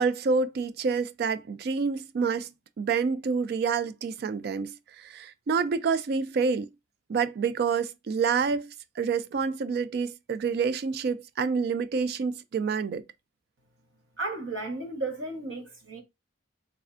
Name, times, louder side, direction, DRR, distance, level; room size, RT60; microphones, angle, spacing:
voice 1, 0.0-2.5 2.8-6.7 7.1-13.0, right 5 dB, 50° right, 0.3 m, -28 dB
voice 2, 14.2-16.0, right 2 dB, 70° right, 1.1 m, -34 dB
3.4 x 3.2 x 2.5 m
head